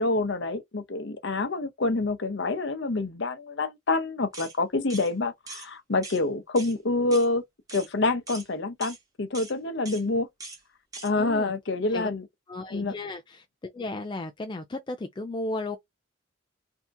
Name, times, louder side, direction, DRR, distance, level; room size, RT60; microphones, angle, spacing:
voice 1, 0.0-7.4 7.7-10.3 11.0-12.3 12.7-12.9, left 2 dB, 55° left, 0.7 m, -27 dB
sound 1, 4.3-4.5 4.9-5.1 5.5-5.7 6.0-6.2 6.6-6.7 7.1-7.3 7.7-7.9 8.3-8.5 8.8-9.0 9.3-9.5 9.9-10.0 10.4-10.6 10.9-11.1, right 3 dB, 15° right, 1.2 m, -41 dB
voice 2, 11.2-11.5 11.9-12.1 12.5-13.4 13.7-15.8, left 2 dB, 20° left, 0.3 m, -34 dB
3.4 x 2.8 x 2.5 m
head